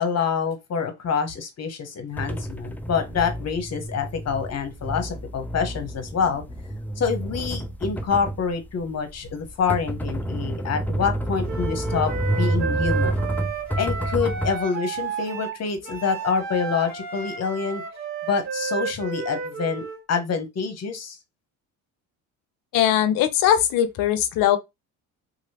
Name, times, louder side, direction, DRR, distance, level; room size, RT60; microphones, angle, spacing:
voice 1, 0.0-6.4 7.0-12.1 12.4-13.2 13.8-17.8 18.3-21.2, left 6 dB, 45° left, 1.0 m, -26 dB
sound 1, 2.2-14.6, right 1 dB, 5° left, 0.5 m, -29 dB
Wind instrument woodwind instrument, 11.5-20.0, right 5 dB, 45° right, 1.5 m, -32 dB
voice 2, 22.7-24.6, left 11 dB, 60° left, 0.7 m, -20 dB
2.9 x 2.7 x 2.8 m
supercardioid pair, 80°, 38 cm